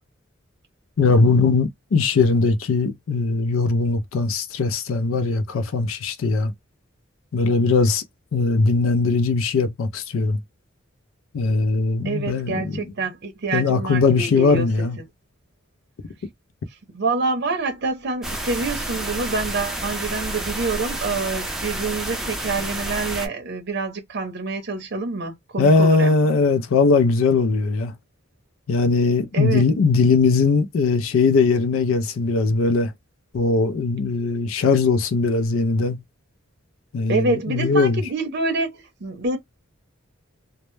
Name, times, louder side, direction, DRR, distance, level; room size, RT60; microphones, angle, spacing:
voice 1, 1.0-6.5 7.3-8.0 8.3-10.4 11.3-12.9 13.5-15.0 25.6-27.9 28.7-32.9 33.3-36.0 36.9-38.0, left 4 dB, 75° left, 0.4 m, -20 dB
voice 2, 12.0-14.7 15.0-15.1 16.9-26.2 29.3-29.6 37.1-39.4, right 3 dB, 55° right, 0.6 m, -26 dB
sound 1, 18.2-23.3, right 1 dB, ahead, 0.5 m, -29 dB
2.1 x 2.0 x 3.0 m
head